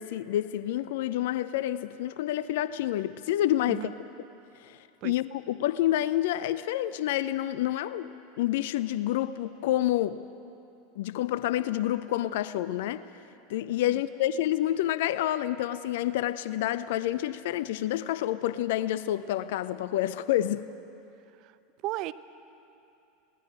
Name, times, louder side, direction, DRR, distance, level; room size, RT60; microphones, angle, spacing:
voice 1, 0.0-3.9 4.6-4.8 5.0-8.1 8.4-10.2 11.0-13.0 13.5-20.7, left 13 dB, 65° left, 15 dB, 0.6 m, -28 dB
voice 2, 3.7-3.9 5.0-5.1 13.9-14.0 21.4-21.5 21.8-22.1, right 17 dB, 50° right, 14 dB, 0.8 m, -34 dB
21.5 x 18.5 x 8.9 m, 2.8 s
hypercardioid pair, 85°, 0 cm